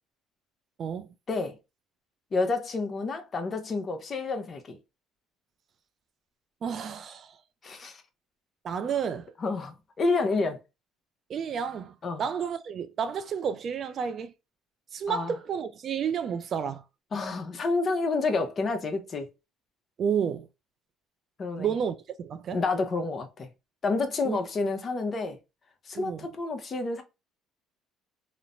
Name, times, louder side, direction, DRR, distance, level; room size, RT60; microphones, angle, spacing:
voice 1, 2.3-4.8 7.6-8.0 9.4-10.6 12.0-12.2 15.1-15.3 17.1-19.3 21.4-21.7 22.5-23.5 23.8-25.4 25.9-27.0, left 3 dB, 35° left, 0.7 m, -29 dB
voice 2, 6.6-7.4 8.6-9.3 11.3-14.3 14.9-16.8 20.0-20.5 21.6-22.6 24.2-24.4 25.9-26.3, right 7 dB, 50° right, 0.3 m, -31 dB
3.1 x 2.0 x 2.5 m
cardioid pair, 105°, 0 cm